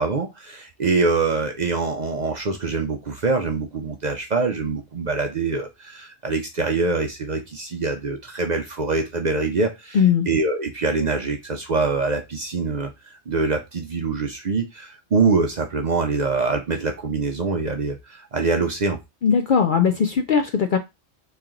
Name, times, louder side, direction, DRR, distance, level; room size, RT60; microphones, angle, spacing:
voice 1, 0.0-10.0 10.3-12.9 13.3-19.0, right 4 dB, 50° right, 0.5 m, -24 dB
voice 2, 9.9-10.3 19.2-20.8, left 6 dB, 60° left, 0.5 m, -19 dB
3.2 x 2.9 x 3.7 m
omnidirectional pair, 1.2 m